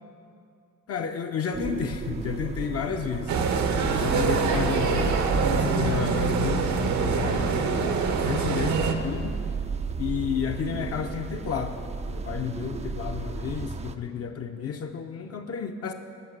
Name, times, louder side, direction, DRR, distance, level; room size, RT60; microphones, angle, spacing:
voice 1, 0.9-3.3 3.9-9.3 10.0-11.8 12.1-15.9, left 7 dB, 50° left, 4 dB, 0.6 m, -31 dB
sound 1, 1.5-14.0, right 5 dB, 25° right, 0.3 m, -35 dB
sound 2, 3.3-8.9, right 5 dB, 70° right, 0.9 m, -25 dB
11.0 x 5.0 x 6.1 m, 2.4 s
cardioid pair, 90°, 30 cm